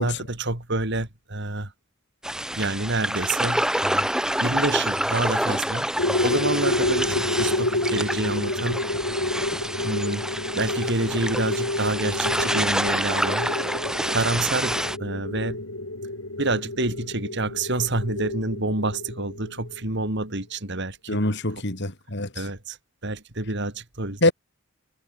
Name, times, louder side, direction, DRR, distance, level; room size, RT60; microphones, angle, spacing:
voice 1, 0.0-1.7 2.6-4.1 4.4-5.9 6.2-8.8 9.8-10.2 10.5-13.5 14.1-15.6 16.4-21.2 22.4-22.8 23.0-24.3, right 2 dB, 55° right, 4.1 m, -28 dB
sound 1, 2.2-15.0, right 1 dB, 5° right, 2.7 m, -27 dB
sound 2, 6.0-20.2, left 2 dB, 90° left, 6.1 m, -29 dB
voice 2, 21.1-22.5 24.2-24.3, left 2 dB, 55° left, 4.6 m, -24 dB
head